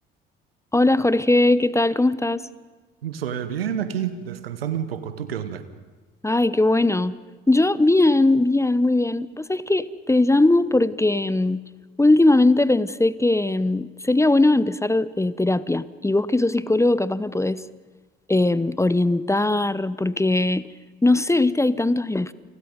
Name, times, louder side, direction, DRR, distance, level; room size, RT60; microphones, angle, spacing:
voice 1, 0.7-2.4 6.2-7.2 7.5-11.6 12.0-17.6 18.3-20.7 21.0-22.3, left 2 dB, 10° left, 17 dB, 0.9 m, -20 dB
voice 2, 3.0-5.6, right 9 dB, 80° right, 12 dB, 1.4 m, -29 dB
29.5 x 28.0 x 5.3 m, 1.3 s
figure-of-eight pair, 50°, 29 cm